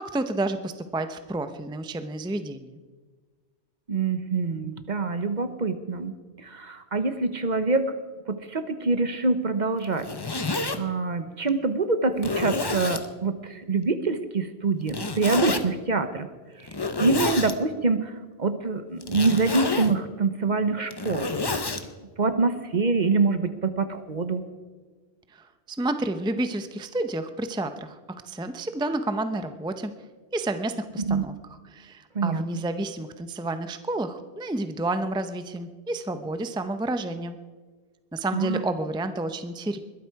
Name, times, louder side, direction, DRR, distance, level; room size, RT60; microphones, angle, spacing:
voice 1, 0.0-2.8 25.3-28.0 28.2-29.9 30.3-31.3 31.7-37.4 38.1-39.8, right 2 dB, 5° right, 9 dB, 0.6 m, -30 dB
voice 2, 3.9-7.9 8.3-10.1 10.4-16.3 17.0-18.1 18.4-21.3 22.2-24.4 31.0-31.2 32.1-32.4 38.3-38.6, right 3 dB, 45° right, 10 dB, 1.0 m, -25 dB
Zipper (clothing), 9.8-10.8 11.5-11.6 12.2-13.1 14.9-15.6 16.6-17.5 19.0-20.0 20.7-21.8, left 3 dB, 25° left, 0.8 m, -29 dB
21.5 x 12.5 x 4.7 m, 1.4 s
omnidirectional pair, 1.1 m